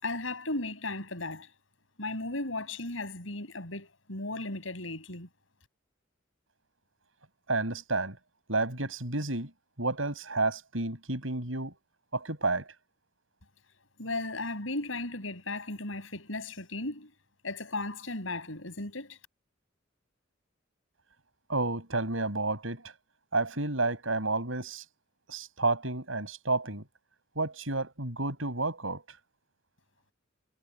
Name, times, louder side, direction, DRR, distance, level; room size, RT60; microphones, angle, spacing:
voice 1, 0.0-1.5 2.0-5.3 14.0-17.1 17.4-19.2, left 2 dB, 85° left, 6.5 m, -36 dB
voice 2, 7.5-8.2 8.5-9.5 9.8-11.7 12.1-12.7 21.5-22.9 23.3-24.8 25.3-26.8 27.4-29.0, right 3 dB, 85° right, 6.5 m, -30 dB
head